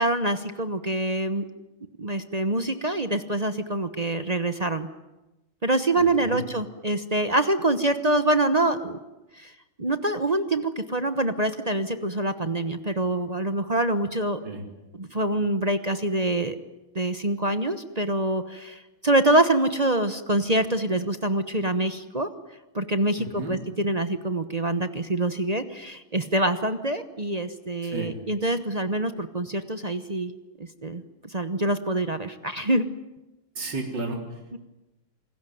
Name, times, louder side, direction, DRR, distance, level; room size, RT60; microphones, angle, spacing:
voice 1, 0.0-1.4 2.0-4.9 5.6-9.0 9.4-9.5 9.8-14.4 14.9-16.6 16.9-22.3 22.7-30.3 30.8-32.9 34.5-34.6, right 1 dB, 30° right, 9 dB, 0.7 m, -25 dB
voice 2, 6.0-6.4 14.4-14.6 23.2-23.6 27.9-28.1 33.6-34.2, right 2 dB, 60° right, 2 dB, 4.3 m, -32 dB
27.5 x 20.0 x 9.4 m, 1.0 s
omnidirectional pair, 2.2 m